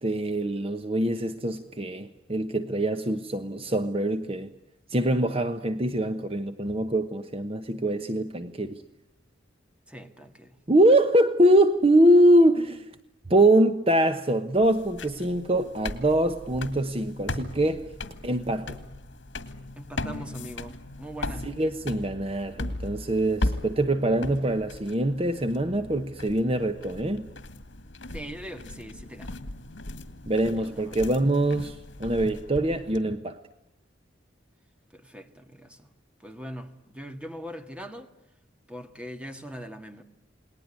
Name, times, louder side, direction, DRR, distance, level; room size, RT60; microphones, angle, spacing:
voice 1, 0.0-4.5 4.9-8.8 10.7-12.8 13.3-17.9 18.2-18.8 21.4-27.3 30.3-33.4, right 1 dB, 30° right, 1.1 m, -23 dB
voice 2, 9.9-10.6 19.8-21.5 28.1-29.4 30.6-31.0 34.9-35.9 36.2-38.1 38.7-40.0, equal, 5° right, 1.8 m, -41 dB
sound 1, 14.6-33.0, left 1 dB, 80° left, 2.1 m, -38 dB
29.0 x 20.0 x 9.8 m
head